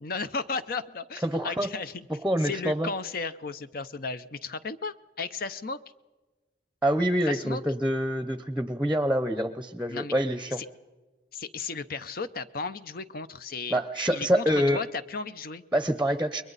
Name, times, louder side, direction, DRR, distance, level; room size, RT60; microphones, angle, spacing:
voice 1, 0.0-2.1 2.4-5.8 7.3-7.6 9.9-10.1 10.6-10.7 11.3-13.8 14.1-15.6, left 4 dB, 55° left, 12 dB, 0.7 m, -34 dB
voice 2, 1.2-1.7 2.2-2.9 6.8-10.6 13.7-14.8 15.7-16.4, equal, 5° right, 11 dB, 0.8 m, -26 dB
29.0 x 22.0 x 4.1 m, 1.2 s
head